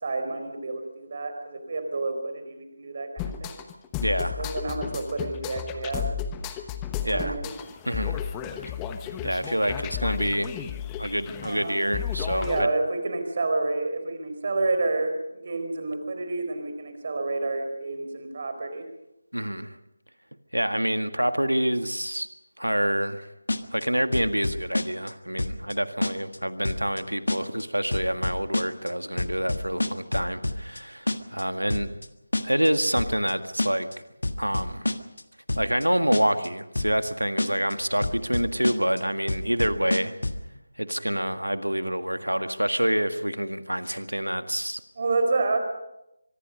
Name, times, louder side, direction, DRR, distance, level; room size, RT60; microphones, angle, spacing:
voice 1, 0.0-3.6 4.4-6.0 7.0-7.5 11.4-11.9 12.3-18.8 45.0-45.6, right 3 dB, 40° right, 7 dB, 4.5 m, -29 dB
sound 1, 3.2-12.7, left 9 dB, 10° left, 1.1 m, -33 dB
voice 2, 4.0-4.5 7.0-7.3 7.9-8.3 9.2-10.5 11.0-12.7 19.3-19.7 20.5-22.3 22.6-23.2 23.7-31.9 32.4-33.9 34.4-34.9 35.6-40.1 40.8-44.8, equal, 85° right, 9 dB, 1.8 m, -27 dB
sound 2, 23.5-23.8 24.1-25.1 25.4-25.7 26.0-26.4 26.6-27.0 27.3-27.6 27.9-28.9 29.2-30.8 31.1-31.4 31.7-32.1 32.3-32.7 33.0-33.3 33.6-33.9 34.2-35.2 35.5-35.8 36.1-36.5 36.7-37.1 37.4-37.7 38.0-39.0 39.3-40.4, left 2 dB, 65° left, 1.6 m, -28 dB
24.5 x 22.5 x 5.4 m, 0.88 s
figure-of-eight pair, 160°, 0 cm